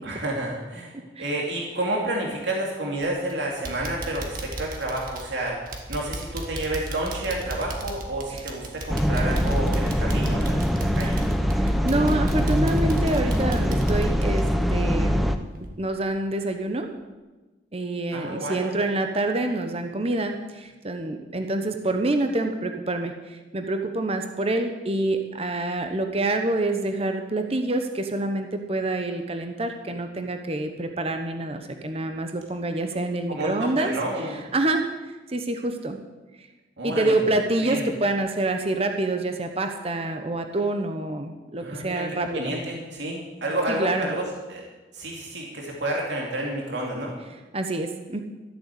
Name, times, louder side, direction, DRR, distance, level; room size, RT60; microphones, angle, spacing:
voice 1, 0.0-5.6 5.9-11.2 18.1-18.8 33.3-34.4 36.8-37.2 37.6-37.8 41.6-44.6 44.9-47.1, right 1 dB, 75° right, -2 dB, 2.7 m, -30 dB
sound 1, 3.0-3.3 3.6-15.2 15.5-15.7 16.2-16.3, right 1 dB, 50° right, 1.8 m, -35 dB
sound 2, 8.9-15.4, equal, ahead, 0.7 m, -23 dB
voice 2, 11.6-14.4 14.7-15.3 15.6-16.9 17.7-33.9 34.5-36.0 36.4-36.5 36.8-42.5 43.7-44.1 47.5-48.2, right 2 dB, 35° right, 6 dB, 0.9 m, -27 dB
13.5 x 8.0 x 8.3 m, 1.2 s
head